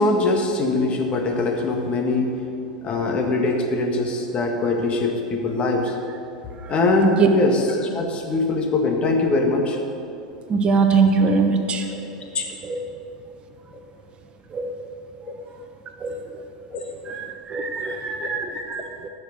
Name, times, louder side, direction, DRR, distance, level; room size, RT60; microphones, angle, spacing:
voice 1, 0.0-2.3 2.8-6.0 6.7-9.8 11.9-12.0 12.3-12.5 15.2-15.3 16.7-17.1 17.8-18.0 18.2-18.6, left 3 dB, 35° left, 2 dB, 1.9 m, -22 dB
voice 2, 10.5-11.8 12.6-12.8 14.5-14.7 16.0-16.1 17.1-19.1, right 5 dB, 30° right, 5 dB, 1.0 m, -22 dB
15.0 x 6.5 x 6.7 m, 2.7 s
hypercardioid pair, 95°, 3 cm